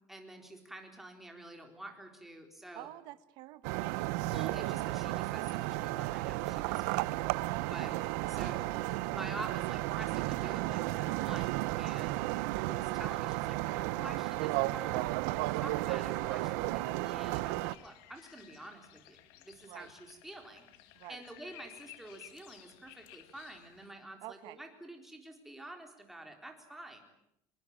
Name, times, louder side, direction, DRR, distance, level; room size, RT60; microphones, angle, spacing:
voice 1, 0.1-2.9 4.3-8.0 8.2-8.7 9.1-12.3 12.7-15.1 15.6-20.7 21.1-27.0, right 1 dB, 5° right, 3 dB, 4.0 m, -48 dB
voice 2, 2.7-3.9 7.5-7.9 12.3-12.5 19.7-19.9 20.9-21.2 24.2-24.6, right 16 dB, 55° right, 13 dB, 1.2 m, -48 dB
sound 1, 3.6-17.7, right 18 dB, 80° right, 0.9 m, -33 dB
sound 2, 17.7-23.9, left 14 dB, 70° left, 2.2 m, -56 dB
24.0 x 21.5 x 8.9 m, 0.78 s
cardioid pair, 160°, 9 cm